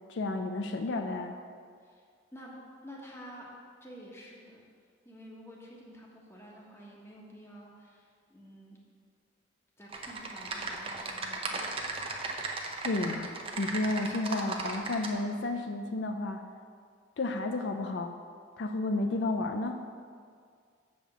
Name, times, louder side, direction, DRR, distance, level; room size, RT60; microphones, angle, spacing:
voice 1, 0.1-1.4 12.8-16.4 17.2-18.2 18.6-19.8, left 2 dB, 70° left, 5 dB, 0.5 m, -32 dB
voice 2, 2.3-3.5 3.8-4.6 5.0-8.8 9.8-11.7, equal, 15° left, -3 dB, 1.3 m, -50 dB
Typing, 9.9-15.1, right 3 dB, 30° right, 0.7 m, -36 dB
7.4 x 5.1 x 7.0 m, 2.1 s
head